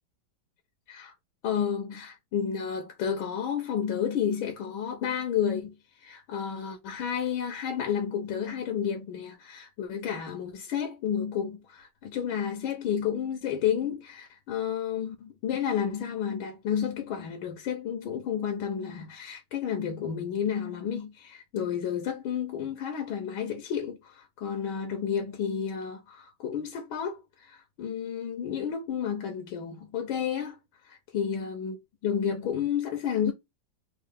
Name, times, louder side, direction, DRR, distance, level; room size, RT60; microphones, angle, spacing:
voice 1, 1.4-5.8 6.0-30.6 30.8-31.8 32.0-33.3, left 8 dB, 90° left, 1.6 m, -31 dB
4.3 x 2.0 x 3.4 m
omnidirectional pair, 2.2 m